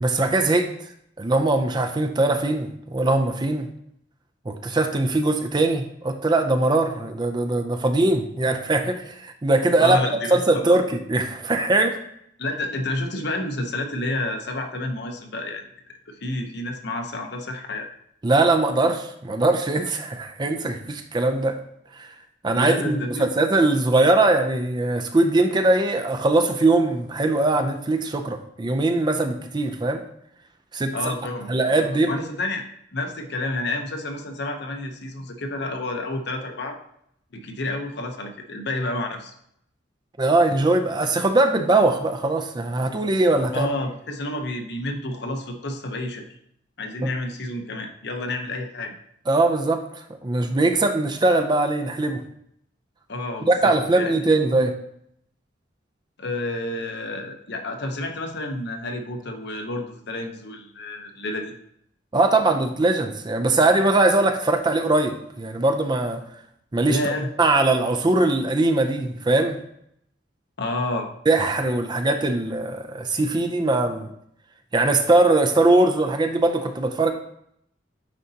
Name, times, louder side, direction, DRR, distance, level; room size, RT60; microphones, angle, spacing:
voice 1, 0.0-0.7 1.2-3.7 4.5-11.9 18.2-21.6 22.0-22.1 22.4-30.0 30.7-31.1 31.5-32.1 40.2-43.7 47.0-47.1 49.3-49.8 50.2-52.2 53.4-54.7 62.1-66.2 66.7-67.0 67.4-69.6 71.3-74.1 74.7-77.1, right 2 dB, 25° right, 6 dB, 0.4 m, -21 dB
voice 2, 9.8-10.6 12.4-15.7 16.1-17.9 22.5-23.3 30.9-32.6 32.9-36.8 37.3-39.3 43.5-46.2 46.8-48.9 53.1-54.1 56.2-61.5 66.8-67.3 70.6-71.1, left 2 dB, 60° left, 4 dB, 0.8 m, -30 dB
9.4 x 4.0 x 2.8 m, 0.73 s
head